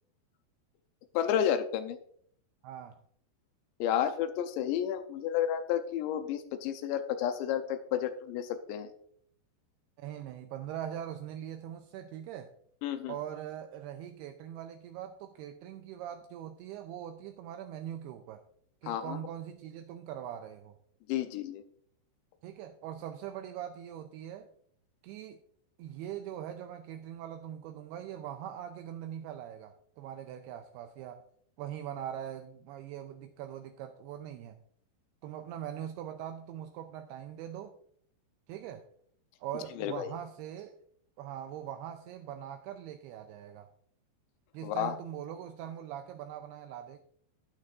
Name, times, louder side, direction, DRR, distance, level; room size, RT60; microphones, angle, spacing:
voice 1, 1.1-2.0 3.8-8.9 12.8-13.1 18.9-19.2 21.1-21.6 39.8-40.1 44.6-44.9, left 10 dB, 85° left, 8 dB, 3.0 m, -31 dB
voice 2, 2.6-3.0 10.0-12.5 13.1-18.4 18.8-20.8 22.4-24.5 25.0-25.4 25.8-31.2 31.6-34.6 35.2-37.7 38.5-38.8 39.4-40.7 41.2-43.7 44.5-47.0, right 10 dB, 85° right, 6 dB, 2.4 m, -42 dB
12.0 x 9.4 x 2.5 m, 0.63 s
omnidirectional pair, 5.0 m